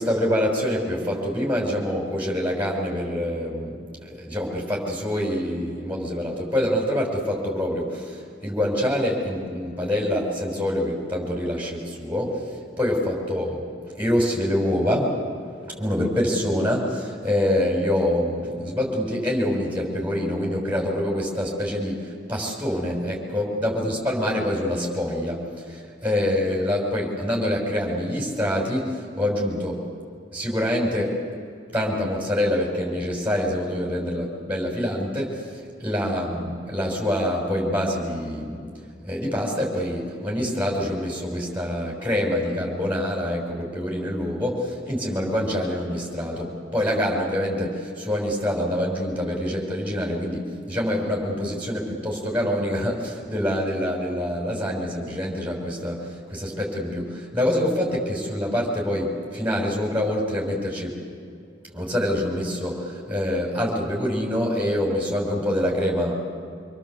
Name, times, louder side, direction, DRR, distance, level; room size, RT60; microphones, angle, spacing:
voice 1, 0.0-12.5 12.8-13.7 14.0-15.2 15.8-29.8 30.3-31.2 31.7-38.7 39.0-61.0 61.7-66.1, left 1 dB, 10° right, -1 dB, 6.0 m, -26 dB
26.5 x 24.0 x 8.1 m, 2.3 s
head